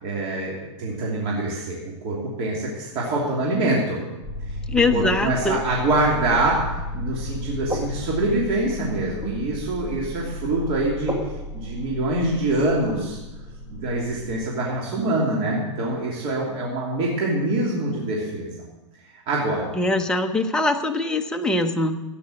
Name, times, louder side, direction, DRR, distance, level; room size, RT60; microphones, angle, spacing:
voice 1, 0.0-4.0 4.7-6.6 6.9-11.1 11.5-13.2 13.7-18.5 19.0-19.7, right 2 dB, 40° right, -3 dB, 2.9 m, -25 dB
sound 1, 4.2-14.3, left 1 dB, 15° right, 2.3 m, -33 dB
voice 2, 4.7-5.6 19.7-22.0, left 2 dB, 5° left, 3 dB, 0.9 m, -22 dB
13.5 x 9.6 x 6.5 m, 1.0 s
hypercardioid pair, 145°, 16 cm